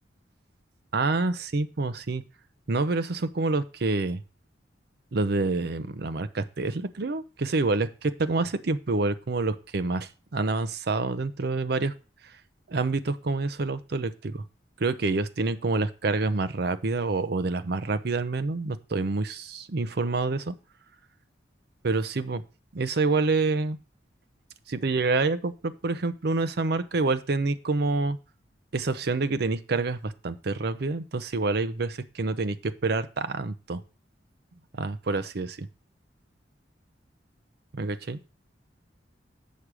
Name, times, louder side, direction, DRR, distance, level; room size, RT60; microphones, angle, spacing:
voice 1, 0.9-2.2 2.7-4.2 5.1-11.9 12.7-14.4 14.8-20.6 21.8-22.4 22.7-23.8 24.7-28.2 28.7-33.8 34.7-35.7 37.7-38.2, right 3 dB, 60° right, 11 dB, 0.6 m, -27 dB
8.4 x 6.1 x 4.8 m, 0.34 s
head